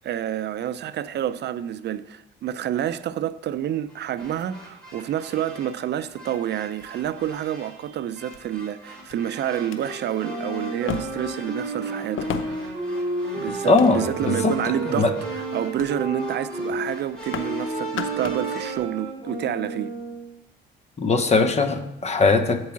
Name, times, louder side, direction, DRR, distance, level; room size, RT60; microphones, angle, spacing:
voice 1, 0.0-12.7 13.3-19.9, right 10 dB, 60° right, 0.4 m, -29 dB
sound 1, 3.9-18.8, right 1 dB, 5° left, 3.6 m, -39 dB
sound 2, 4.1-5.2 6.0-6.1 6.8-7.4 8.3-8.4 9.1-9.2 9.6-9.8 10.9-11.4 12.2-12.8 13.5-14.3 14.9-15.2 15.8-16.0 16.2-16.4 16.7-17.6 17.8-18.5 18.8-18.9, left 6 dB, 75° left, 0.8 m, -35 dB
sound 3, 10.2-16.9 17.3-20.3, right 2 dB, 20° right, 3.3 m, -32 dB
voice 2, 13.6-14.6 15.0-15.1 21.0-22.6, left 3 dB, 35° left, 1.0 m, -20 dB
8.2 x 4.7 x 7.3 m
cardioid pair, 90°, 20 cm